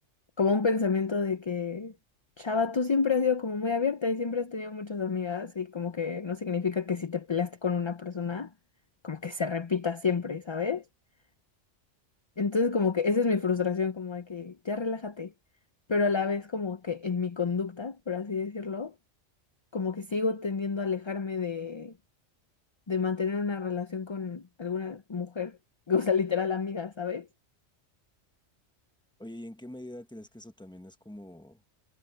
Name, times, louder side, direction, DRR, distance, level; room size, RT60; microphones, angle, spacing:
voice 1, 0.4-2.0 2.4-8.5 9.0-10.8 12.4-15.3 15.9-18.9 19.7-21.9 22.9-25.6 25.9-27.3, left 5 dB, 30° left, 0.5 m, -29 dB
voice 2, 29.2-31.6, left 1 dB, 5° left, 1.2 m, -44 dB
omnidirectional pair, 1.2 m